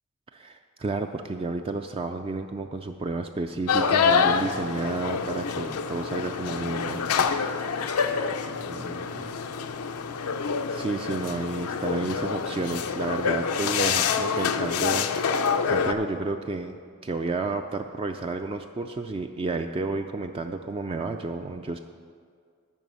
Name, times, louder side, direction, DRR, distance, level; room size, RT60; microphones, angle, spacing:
voice 1, 0.3-7.0 8.7-9.3 10.7-21.8, right 3 dB, 25° right, 6 dB, 0.3 m, -31 dB
sound 1, 3.7-15.9, left 6 dB, 90° left, 0.5 m, -26 dB
9.2 x 5.5 x 8.0 m, 2.1 s
head